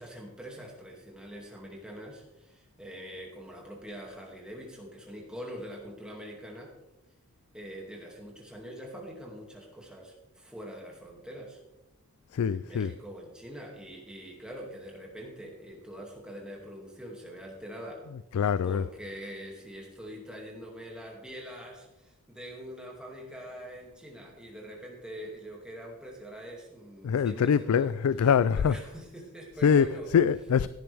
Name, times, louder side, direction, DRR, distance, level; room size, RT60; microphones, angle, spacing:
voice 1, 0.0-6.7 7.5-11.6 12.5-18.1 18.6-27.9 28.5-30.1, equal, 5° right, 2.3 m, -44 dB
voice 2, 12.3-12.9 18.3-18.8 27.0-28.8 29.6-29.9 30.1-30.7, left 7 dB, 85° left, 0.3 m, -24 dB
16.0 x 10.5 x 3.5 m
head